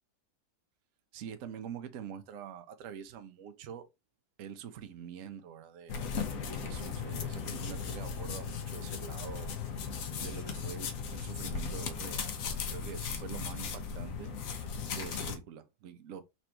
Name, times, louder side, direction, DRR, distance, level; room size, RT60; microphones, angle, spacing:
voice 1, 1.1-3.9 4.4-6.0 6.5-9.6 10.2-14.3 14.9-16.2, right 8 dB, 65° right, 0.9 m, -45 dB
sound 1, 5.9-15.4, left 6 dB, 65° left, 1.1 m, -37 dB
4.3 x 2.6 x 4.3 m
omnidirectional pair, 1.7 m